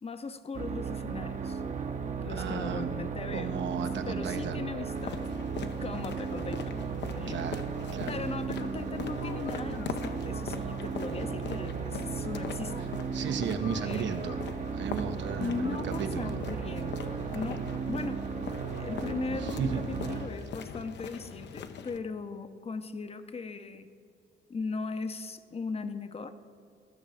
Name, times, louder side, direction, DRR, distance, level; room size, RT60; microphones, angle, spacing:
voice 1, 0.0-1.6 2.2-3.6 4.0-5.2 5.7-6.9 7.1-7.5 8.1-12.8 13.8-14.2 15.4-18.3 18.8-23.9 24.5-26.3, left 4 dB, 30° left, 11 dB, 0.7 m, -38 dB
sound 1, 0.5-20.3, right 6 dB, 40° right, 0.9 m, -35 dB
voice 2, 2.3-2.9 3.3-4.7 7.3-7.6 7.9-8.2 13.1-14.4 14.7-16.4 19.3-19.8, right 6 dB, 65° right, 8 dB, 0.9 m, -35 dB
sound 2, 4.9-22.0, left 6 dB, 65° left, 0.8 m, -42 dB
14.5 x 6.5 x 6.3 m, 2.5 s
cardioid pair, 90°, 20 cm